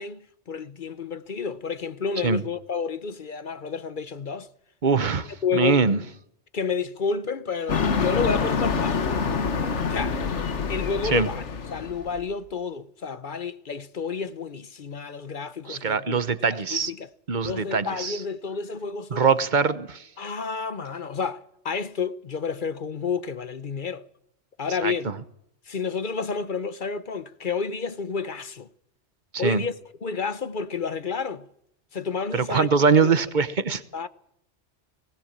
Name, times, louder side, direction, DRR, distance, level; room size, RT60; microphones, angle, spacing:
voice 1, 0.0-4.5 5.4-5.8 6.5-9.0 9.9-10.3 10.7-11.4 11.7-16.2 16.5-17.1 17.4-19.3 20.2-24.1 24.6-25.1 25.7-28.7 29.4-29.7 30.0-31.5 31.9-33.2 33.9-34.1, left 5 dB, 50° left, 1.0 m, -30 dB
voice 2, 4.8-6.0 11.1-11.3 15.7-16.9 17.3-18.2 19.1-20.0 24.8-24.9 29.4-29.6 32.3-33.8, right 5 dB, 45° right, 1.1 m, -22 dB
sound 1, 7.7-12.2, left 5 dB, 85° left, 1.7 m, -26 dB
19.5 x 19.5 x 7.5 m
omnidirectional pair, 1.2 m